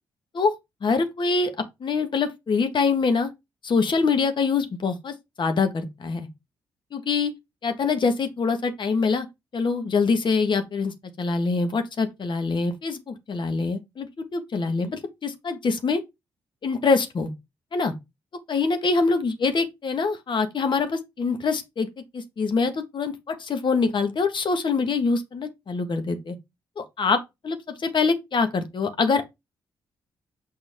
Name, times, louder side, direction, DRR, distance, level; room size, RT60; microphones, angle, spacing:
voice 1, 0.8-3.3 3.6-6.3 6.9-7.3 7.6-9.3 9.5-14.1 14.3-16.0 16.6-17.3 17.7-17.9 18.5-21.9 22.1-26.3 26.8-29.2, left 4 dB, 50° left, 1.5 m, -24 dB
6.4 x 4.6 x 3.5 m
hypercardioid pair, 50°, 10 cm